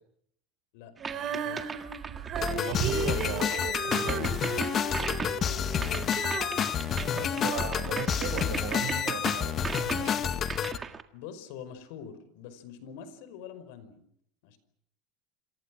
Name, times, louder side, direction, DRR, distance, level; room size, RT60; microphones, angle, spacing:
voice 1, 0.7-1.7 5.2-6.6 7.0-7.5 9.9-10.5 11.1-14.0 14.4-14.6, left 8 dB, 70° left, 13 dB, 5.2 m, -46 dB
sound 1, 1.0-11.0, right 5 dB, 20° right, 1.7 m, -38 dB
Female singing, 1.0-8.0, right 6 dB, 35° right, 4.7 m, -36 dB
voice 2, 2.3-4.3 7.2-10.2, right 10 dB, 75° right, 7 dB, 6.4 m, -37 dB
sound 2, 2.4-10.8, left 8 dB, 30° left, 1.7 m, -29 dB
28.0 x 27.5 x 6.3 m, 0.69 s
cardioid pair, 155°, 0 cm